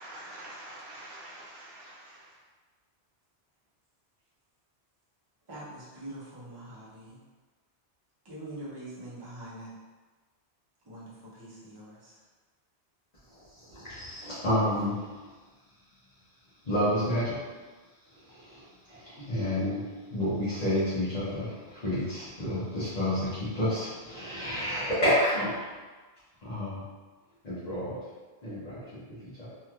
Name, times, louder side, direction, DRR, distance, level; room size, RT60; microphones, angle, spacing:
voice 1, 0.0-2.4, right 1 dB, 65° right, -4 dB, 0.9 m, -46 dB
voice 2, 5.5-7.2 8.2-9.7 10.8-12.2, right 1 dB, 25° right, -8 dB, 0.7 m, -44 dB
voice 3, 13.6-15.1 16.7-17.4 18.3-25.7 26.4-26.8 27.4-28.0 28.4-29.5, left 1 dB, 40° left, -11 dB, 0.8 m, -30 dB
3.1 x 2.8 x 2.3 m, 1.3 s
omnidirectional pair, 1.1 m